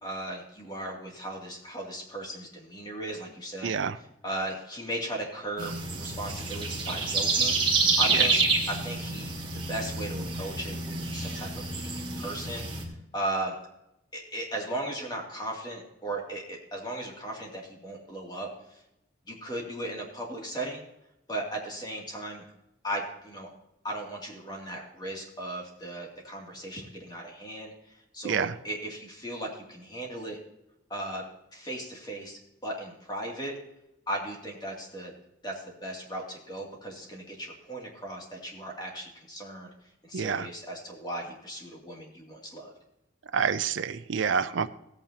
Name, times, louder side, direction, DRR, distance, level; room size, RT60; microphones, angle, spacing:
voice 1, 0.0-8.4 8.7-12.9 13.1-13.6 14.1-18.5 19.3-20.8 21.3-22.4 22.8-23.5 23.8-30.4 30.9-31.2 31.5-33.5 34.1-35.1 35.4-39.7 40.0-42.7, right 1 dB, 20° left, -1 dB, 2.5 m, -37 dB
voice 2, 3.6-4.0 8.1-8.2 28.2-28.5 40.1-40.5 43.3-44.7, right 6 dB, 80° right, 11 dB, 0.5 m, -28 dB
sound 1, 5.6-12.8, right 3 dB, 25° right, 2.1 m, -28 dB
16.0 x 8.8 x 2.9 m, 0.85 s
head